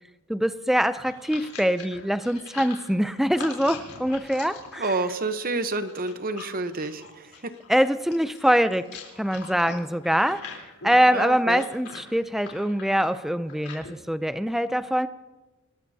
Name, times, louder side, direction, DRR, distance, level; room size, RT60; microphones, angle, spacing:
voice 1, 0.3-4.9 7.7-8.9 9.2-10.4 10.8-15.1, equal, ahead, 12 dB, 0.4 m, -23 dB
sound 1, 0.8-13.9, left 5 dB, 85° left, 3.6 m, -43 dB
voice 2, 4.8-7.5 11.1-11.7, right 3 dB, 40° right, 10 dB, 0.9 m, -29 dB
26.5 x 19.5 x 2.8 m, 1.1 s
head